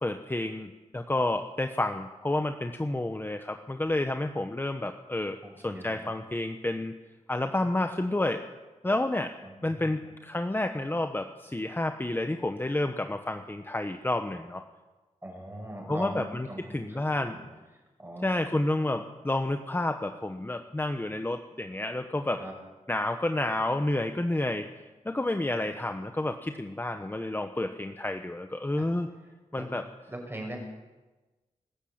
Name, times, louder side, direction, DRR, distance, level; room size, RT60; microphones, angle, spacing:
voice 1, 0.0-5.4 5.6-6.9 7.3-8.4 8.8-9.3 9.6-14.6 15.9-17.4 18.2-22.4 22.9-24.7 25.0-29.1 29.5-29.8, left 2 dB, 15° left, 6 dB, 1.1 m, -30 dB
voice 2, 5.4-6.1 9.4-10.1 15.2-17.4 18.0-18.3 22.4-22.5 28.8-28.9 29.5-29.6 30.1-30.6, right 1 dB, 20° right, 1 dB, 6.6 m, -41 dB
22.0 x 14.0 x 8.8 m, 1.2 s
wide cardioid pair, 110°, 13 cm